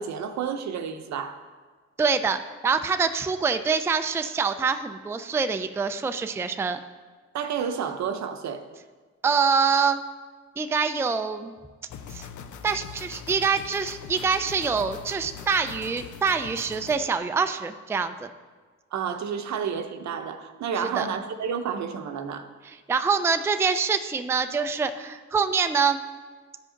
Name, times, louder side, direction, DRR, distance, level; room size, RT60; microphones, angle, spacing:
voice 1, 0.0-1.4 7.3-8.6 18.9-22.5, right 7 dB, 65° right, 8 dB, 0.8 m, -30 dB
voice 2, 2.0-6.8 9.2-10.0 10.6-11.5 12.1-12.3 12.6-18.3 21.0-21.1 22.9-26.0, right 5 dB, 10° right, 9 dB, 0.4 m, -25 dB
sound 1, 11.9-17.0, left 7 dB, 75° left, 0.7 m, -42 dB
11.5 x 5.1 x 3.8 m, 1.4 s
cardioid pair, 90°, 30 cm